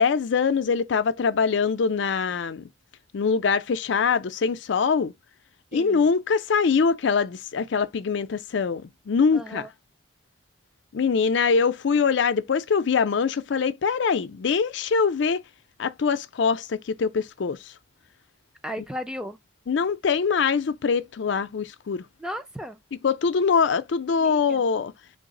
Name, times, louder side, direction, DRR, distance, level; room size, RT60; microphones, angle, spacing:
voice 1, 0.0-2.7 3.1-5.1 5.7-9.6 10.9-15.4 15.8-17.6 19.7-22.0 23.0-24.9, left 5 dB, 70° left, 0.4 m, -23 dB
voice 2, 5.7-6.1 9.3-9.7 18.6-19.4 22.2-22.8 24.1-24.7, equal, 5° right, 0.4 m, -35 dB
3.8 x 2.0 x 3.7 m
head